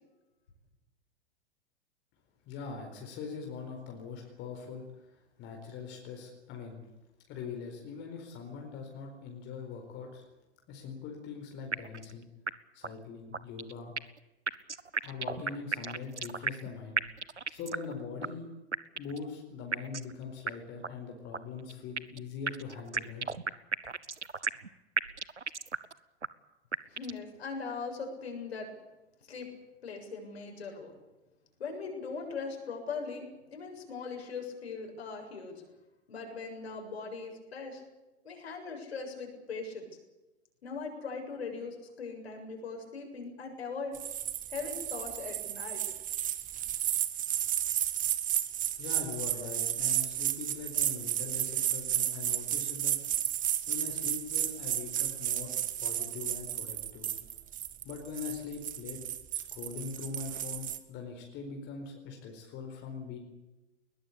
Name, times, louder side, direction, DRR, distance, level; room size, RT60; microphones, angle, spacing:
voice 1, 2.5-5.1 5.4-6.8 7.3-10.2 10.7-12.3 12.7-13.9 15.0-17.0 17.5-18.5 18.9-23.3 48.8-53.0 53.7-57.1 57.8-59.0 59.3-63.2, left 5 dB, 35° left, 2 dB, 4.5 m, -42 dB
sound 1, 11.7-12.1 12.5-12.6 12.8-12.9 13.3-14.2 14.5-16.7 17.0-17.9 18.2-18.3 18.7-19.2 19.7-20.1 20.5-20.6 20.8-20.9 21.3-22.2 22.5-24.7 25.0-25.9 26.2-26.3 26.7-27.2, right 4 dB, 85° right, 1.1 m, -34 dB
voice 2, 26.9-28.8 29.3-29.5 29.8-30.9 31.6-35.6 36.1-37.8 38.2-39.9 40.6-44.0 44.5-45.8, left 4 dB, 65° left, 3 dB, 7.4 m, -40 dB
sound 2, 43.9-60.8, right 11 dB, 25° right, 1.7 m, -33 dB
21.5 x 20.5 x 8.6 m, 1.0 s
figure-of-eight pair, 100°, 34 cm